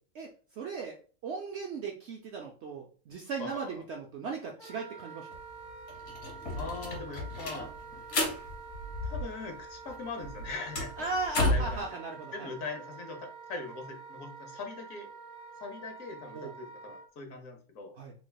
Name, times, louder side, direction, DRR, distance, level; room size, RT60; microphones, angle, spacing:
voice 1, 0.6-1.0 1.2-5.3 11.0-12.5 16.3-16.5 18.0-18.1, right 4 dB, 70° right, 1 dB, 0.6 m, -37 dB
voice 2, 3.4-3.8 6.6-7.7 9.0-11.1 11.5-12.0 12.3-15.1 15.6-18.0, left 4 dB, 65° left, 3 dB, 1.1 m, -41 dB
Wind instrument woodwind instrument, 4.6-17.0, right 5 dB, 35° left, 1.5 m, -47 dB
sound 1, 5.3-5.4 5.7-9.6 9.9-11.8, left 2 dB, 90° left, 1.6 m, -33 dB
3.3 x 3.2 x 2.2 m, 0.39 s
omnidirectional pair, 1.6 m